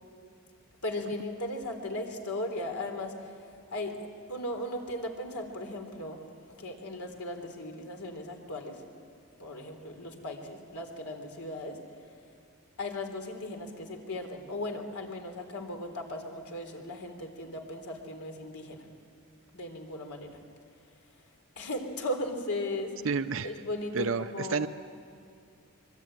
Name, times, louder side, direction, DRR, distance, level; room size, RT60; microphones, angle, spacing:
voice 1, 0.8-3.3 3.7-4.0 4.3-6.2 6.6-8.8 9.4-11.8 12.8-18.8 19.5-20.3 21.6-22.9 23.4-24.7, left 1 dB, 85° left, 3 dB, 3.5 m, -37 dB
voice 2, 23.0-23.5 23.9-24.7, right 5 dB, 60° right, 10 dB, 0.5 m, -30 dB
25.0 x 22.5 x 9.0 m, 2.4 s
head